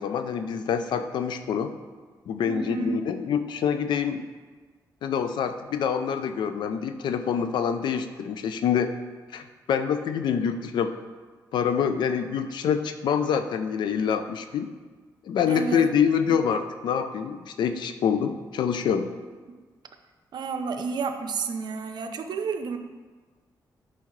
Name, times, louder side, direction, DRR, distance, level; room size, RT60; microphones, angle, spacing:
voice 1, 0.0-1.7 2.3-4.2 5.0-8.9 9.3-11.0 11.5-14.7 15.3-19.1, left 7 dB, 75° left, 9 dB, 0.5 m, -26 dB
voice 2, 2.5-3.0 15.5-15.9 16.3-16.4 20.3-22.8, right 5 dB, 70° right, 7 dB, 0.6 m, -30 dB
8.5 x 5.5 x 3.2 m, 1.4 s
cardioid pair, 70°, 8 cm